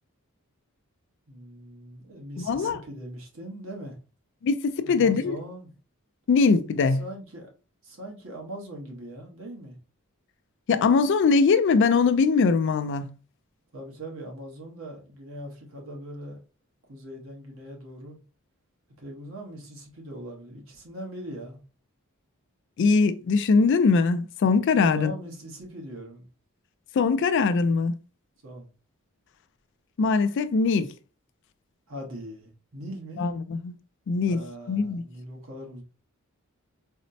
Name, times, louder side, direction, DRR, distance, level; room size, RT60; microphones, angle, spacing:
voice 1, 1.3-4.0 4.8-5.7 7.0-7.5 7.8-9.8 13.7-16.4 16.9-18.2 19.0-21.6 24.7-26.3 28.4-28.7 31.9-33.2 34.3-35.8, right 1 dB, 65° right, 1.1 m, -40 dB
voice 2, 2.4-2.8 4.4-5.4 6.3-7.0 10.7-13.1 22.8-25.1 26.9-27.9 30.0-30.9 33.2-33.7 34.1-35.0, left 4 dB, 55° left, 0.3 m, -22 dB
4.1 x 2.0 x 2.6 m
head